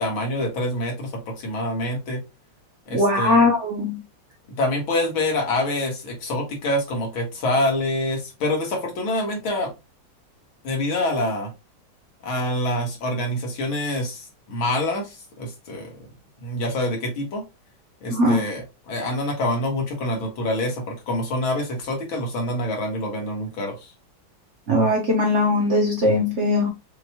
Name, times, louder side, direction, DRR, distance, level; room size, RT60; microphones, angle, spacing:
voice 1, 0.0-2.2 2.9-3.5 4.6-9.7 10.6-11.5 12.2-16.0 16.4-17.4 18.0-23.9, left 1 dB, 90° left, 2.3 m, -26 dB
voice 2, 2.9-4.0 18.1-18.4 24.7-26.7, left 1 dB, 50° right, 0.9 m, -20 dB
6.3 x 3.0 x 2.2 m
omnidirectional pair, 2.2 m